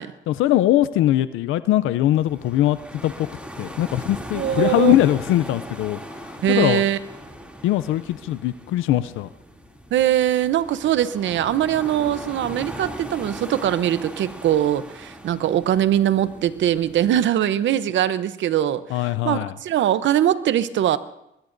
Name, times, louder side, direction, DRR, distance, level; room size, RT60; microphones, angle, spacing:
voice 1, 0.3-3.3 3.6-6.8 7.6-9.3 18.9-19.5, left 14 dB, 85° left, 14 dB, 0.5 m, -21 dB
sound 1, 2.1-17.3, equal, 5° right, 2.7 m, -39 dB
voice 2, 4.3-5.0 6.4-7.0 9.9-21.0, right 11 dB, 70° right, 14 dB, 0.8 m, -21 dB
23.0 x 20.5 x 2.6 m, 0.84 s
cardioid pair, 90°, 20 cm